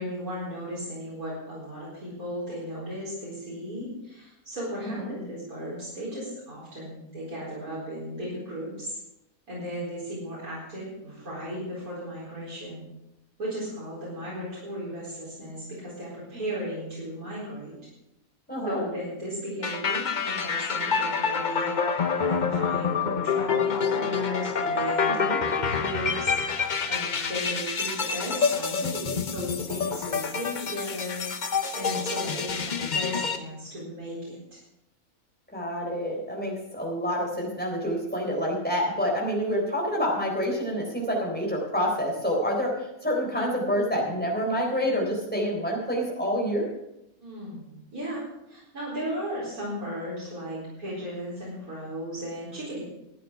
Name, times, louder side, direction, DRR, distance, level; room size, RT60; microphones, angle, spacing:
voice 1, 0.0-9.0 9.5-12.8 13.4-17.7 18.6-26.4 26.9-31.2 31.7-34.6 47.2-52.8, equal, 90° right, -7 dB, 4.8 m, -35 dB
voice 2, 4.8-5.1 18.5-18.8 25.1-25.4 35.5-46.7, equal, 5° left, -2 dB, 3.7 m, -28 dB
sound 1, 19.6-33.4, left 5 dB, 40° left, 0.7 m, -27 dB
13.0 x 9.3 x 5.7 m, 0.86 s
omnidirectional pair, 1.5 m